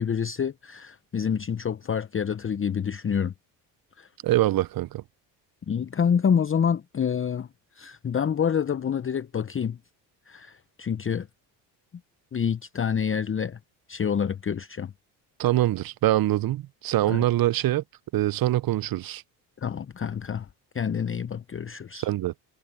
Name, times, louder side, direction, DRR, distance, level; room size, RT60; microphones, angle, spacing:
voice 1, 0.0-3.3 4.0-4.1 5.7-7.5 7.8-9.8 10.3-11.3 12.3-13.6 13.9-14.9 17.1-17.2 19.6-20.5 20.7-22.1, left 7 dB, 25° left, 0.8 m, -27 dB
voice 2, 4.2-5.0 15.4-17.8 18.1-19.2 21.9-22.3, right 15 dB, 50° right, 0.7 m, -24 dB
hypercardioid pair, 60°, 47 cm